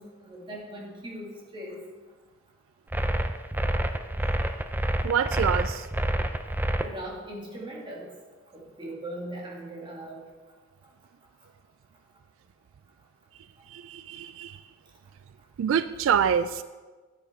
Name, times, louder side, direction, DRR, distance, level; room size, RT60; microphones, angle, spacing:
voice 1, 0.0-1.8 6.8-8.1 8.5-10.2, right 1 dB, 25° right, -3 dB, 2.0 m, -39 dB
sound 1, 2.9-6.8, right 1 dB, 10° right, 0.4 m, -27 dB
voice 2, 5.0-5.9 13.7-14.6 15.6-16.6, right 8 dB, 85° right, 13 dB, 0.3 m, -26 dB
9.7 x 9.6 x 3.6 m, 1.3 s
head